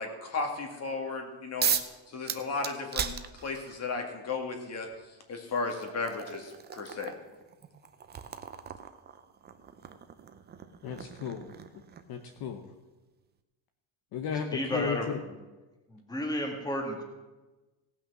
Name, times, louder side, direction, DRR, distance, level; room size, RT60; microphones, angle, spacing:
voice 1, 0.0-1.7 2.1-3.1 3.4-4.9 5.3-7.1, left 4 dB, 30° left, 3 dB, 2.0 m, -34 dB
sound 1, 1.6-1.9 2.3-3.8 4.9-5.0 5.6-12.2, right 7 dB, 20° right, 0.5 m, -36 dB
voice 2, 10.8-11.5 12.1-12.6 14.1-15.0, left 7 dB, 50° left, 5 dB, 1.0 m, -34 dB
voice 3, 14.5-15.5 15.9-17.0, left 1 dB, 10° left, 2 dB, 1.8 m, -33 dB
17.5 x 6.0 x 6.1 m, 1.2 s
cardioid pair, 145°, 47 cm